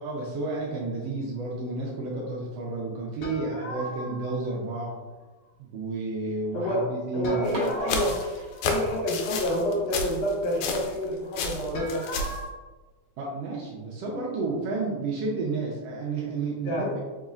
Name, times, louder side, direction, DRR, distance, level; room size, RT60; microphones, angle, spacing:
voice 1, 0.0-4.9 5.6-7.6 13.2-17.0, right 3 dB, 75° right, -3 dB, 1.6 m, -31 dB
sound 1, 3.2-4.5 7.2-9.1 11.7-12.5, equal, 45° left, 1.7 m, -38 dB
voice 2, 7.1-8.2 8.6-12.1 16.6-17.0, equal, 65° left, -4 dB, 2.2 m, -28 dB
sound 2, 7.5-11.1 11.3-12.4, left 3 dB, 85° left, 2.0 m, -31 dB
sound 3, 7.5-9.3 9.6-9.7 10.3-10.5 10.9-11.0 11.2-11.3 12.1-12.4, right 1 dB, 50° right, 1.4 m, -39 dB
4.7 x 4.0 x 2.5 m, 1.3 s
omnidirectional pair, 3.3 m